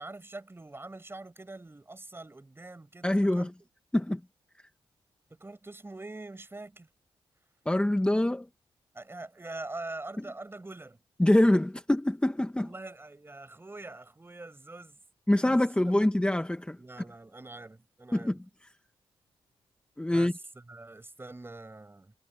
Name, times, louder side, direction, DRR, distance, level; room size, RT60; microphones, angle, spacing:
voice 1, 0.0-3.7 5.3-6.9 8.9-11.0 12.6-15.0 15.4-15.9 16.8-18.4 20.1-22.1, right 2 dB, 25° right, 6.6 m, -44 dB
voice 2, 3.0-3.5 3.9-4.2 7.7-8.5 11.2-12.7 15.3-16.8 18.1-18.4 20.0-20.3, left 1 dB, 10° left, 1.7 m, -25 dB
cardioid pair, 65°, 10 cm